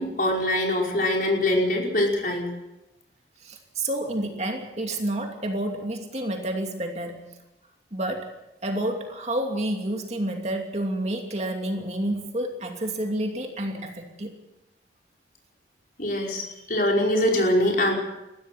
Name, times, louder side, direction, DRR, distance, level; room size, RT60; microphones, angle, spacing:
voice 1, 0.0-2.5 16.0-17.9, left 1 dB, 50° left, 0 dB, 5.3 m, -23 dB
voice 2, 3.4-7.3 7.9-8.3 8.6-14.4, right 1 dB, 35° right, 3 dB, 2.7 m, -29 dB
22.0 x 15.5 x 7.9 m, 0.94 s
head